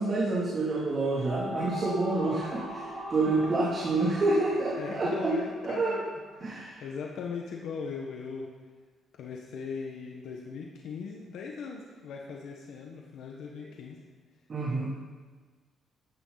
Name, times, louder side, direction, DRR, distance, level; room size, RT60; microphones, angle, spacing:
voice 1, 0.0-5.4 5.6-6.0 6.4-6.8 14.5-14.9, right 2 dB, 40° right, -5 dB, 2.8 m, -28 dB
sound 1, 1.0-6.3, equal, 20° right, 4.5 m, -40 dB
voice 2, 4.8-6.0 6.4-8.5 9.1-14.0, left 5 dB, 75° left, 0 dB, 1.4 m, -39 dB
14.5 x 11.0 x 4.1 m, 1.4 s
cardioid pair, 90°, 0 cm